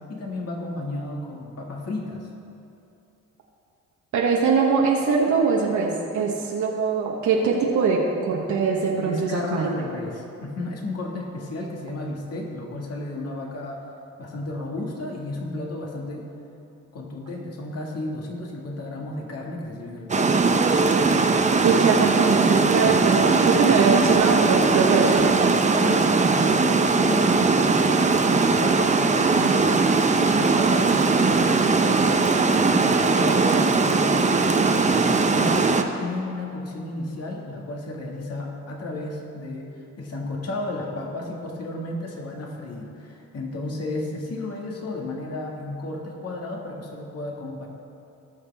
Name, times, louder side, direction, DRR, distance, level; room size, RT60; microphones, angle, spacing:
voice 1, 0.1-2.3 6.2-6.3 9.0-13.8 14.2-16.3 16.9-20.4 25.8-32.2 32.4-39.7 40.0-47.7, left 2 dB, 55° left, -1 dB, 2.0 m, -33 dB
voice 2, 4.1-9.7 21.6-25.4, right 5 dB, 70° right, -2 dB, 1.2 m, -22 dB
Water, 20.1-35.8, right 4 dB, 25° right, 0.7 m, -20 dB
18.0 x 6.5 x 3.5 m, 2.8 s
cardioid pair, 90°, 30 cm